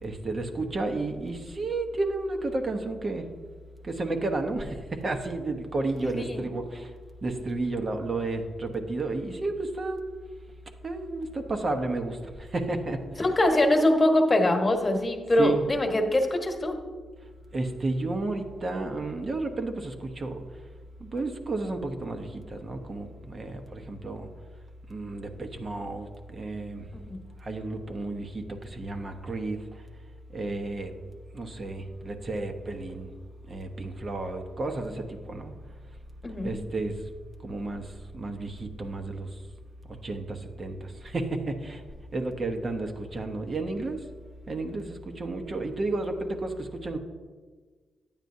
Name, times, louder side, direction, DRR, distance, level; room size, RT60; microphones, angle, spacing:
voice 1, 0.0-3.3 3.8-6.9 7.2-10.0 10.8-13.3 15.4-15.6 17.5-20.4 21.0-24.3 24.9-26.9 27.4-29.8 30.3-30.9 31.3-33.1 33.5-35.6 36.4-37.1 37.4-39.4 39.9-41.8 42.1-44.0 44.5-47.0, right 2 dB, 45° right, 5 dB, 1.0 m, -32 dB
voice 2, 6.0-6.4 13.2-16.8 26.9-27.2 36.2-36.5, left 1 dB, 35° left, 3 dB, 1.3 m, -23 dB
9.0 x 9.0 x 2.7 m, 1.5 s
supercardioid pair, 55°, 0 cm